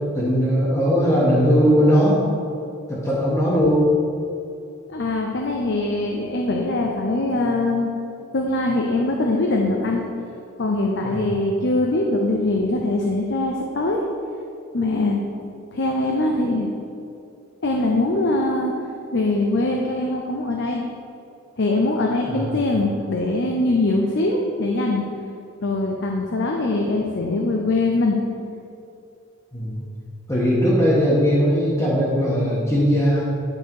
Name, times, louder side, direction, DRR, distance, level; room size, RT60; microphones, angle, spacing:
voice 1, 0.1-2.2 2.9-3.8 11.0-11.2 22.2-22.6 29.5-29.8 30.3-33.2, equal, 15° left, -9 dB, 1.5 m, -19 dB
voice 2, 4.9-7.9 8.3-10.0 10.6-14.0 14.7-15.2 15.7-16.7 17.6-18.7 19.1-20.9 21.6-25.1 25.6-28.2, left 2 dB, 55° left, 1 dB, 0.7 m, -22 dB
10.5 x 4.8 x 4.7 m, 2.5 s
head